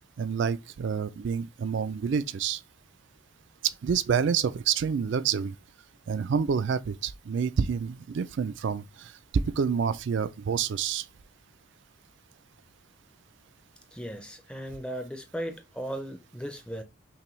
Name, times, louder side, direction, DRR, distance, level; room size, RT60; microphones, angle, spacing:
voice 1, 0.2-2.6 3.6-5.6 6.1-11.1, right 6 dB, 55° right, 0.3 m, -28 dB
voice 2, 13.9-16.8, equal, 5° left, 0.5 m, -37 dB
5.7 x 2.2 x 3.0 m
head